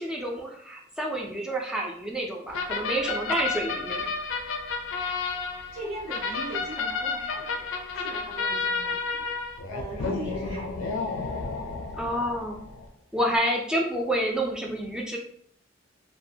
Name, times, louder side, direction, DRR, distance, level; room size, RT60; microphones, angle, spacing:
voice 1, 0.0-4.1 11.9-12.6 13.1-15.2, right 1 dB, 5° right, -1 dB, 0.4 m, -29 dB
sound 1, 2.5-12.9, left 4 dB, 75° left, 0.4 m, -31 dB
voice 2, 5.7-7.7 7.9-9.3 9.7-11.1 13.1-13.3, right 1 dB, 65° right, -9 dB, 0.7 m, -39 dB
2.4 x 2.2 x 2.7 m, 0.64 s
head